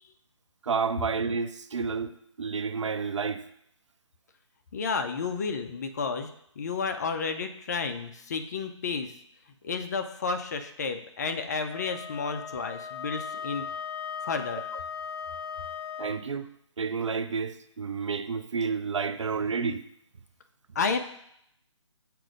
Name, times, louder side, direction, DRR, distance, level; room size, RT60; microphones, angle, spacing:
voice 1, 0.6-2.1 2.4-3.4 16.0-16.5 16.8-19.8, right 5 dB, 70° right, 0.5 m, -30 dB
voice 2, 4.7-6.3 6.6-9.1 9.6-13.7 14.2-14.6 20.7-21.0, left 5 dB, 35° left, 0.5 m, -31 dB
Wind instrument woodwind instrument, 11.7-16.2, left 7 dB, 50° left, 1.0 m, -38 dB
7.4 x 2.5 x 5.0 m
figure-of-eight pair, 150°, 16 cm